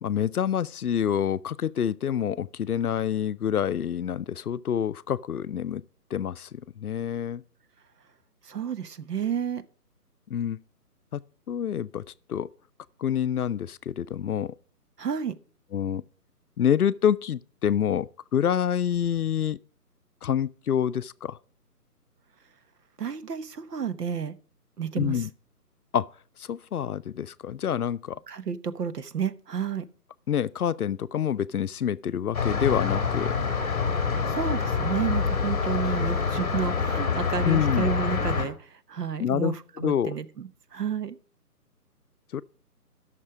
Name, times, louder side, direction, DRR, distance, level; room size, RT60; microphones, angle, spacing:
voice 1, 0.0-5.8 6.1-7.4 10.3-10.6 11.1-11.2 11.5-12.0 12.3-12.5 13.0-14.5 15.7-16.0 16.6-19.6 20.2-21.4 25.0-25.3 25.9-26.1 26.5-28.2 30.3-33.3 37.4-37.9 39.2-40.1 42.3-42.4, left 9 dB, 70° left, 0.6 m, -27 dB
voice 2, 8.4-9.6 15.0-15.3 23.0-24.3 24.8-25.3 28.3-29.8 34.3-41.2, right 7 dB, 75° right, 1.1 m, -31 dB
sound 1, 32.3-38.5, left 5 dB, 25° left, 1.7 m, -26 dB
12.5 x 6.6 x 4.9 m
hypercardioid pair, 175°, 47 cm